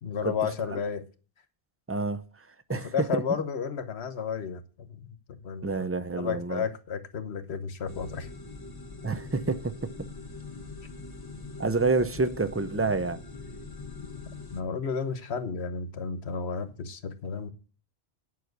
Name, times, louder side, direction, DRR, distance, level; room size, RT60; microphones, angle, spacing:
voice 1, 0.0-1.0 2.7-5.6 6.2-8.3 14.5-17.5, left 6 dB, 80° left, 1.3 m, -32 dB
voice 2, 1.9-2.2 2.7-3.2 5.6-6.6 9.0-9.9 11.6-13.2, right 3 dB, 15° right, 0.5 m, -28 dB
sound 1, 7.9-14.6, left 3 dB, 20° left, 0.9 m, -42 dB
9.5 x 5.7 x 7.9 m
omnidirectional pair, 1.1 m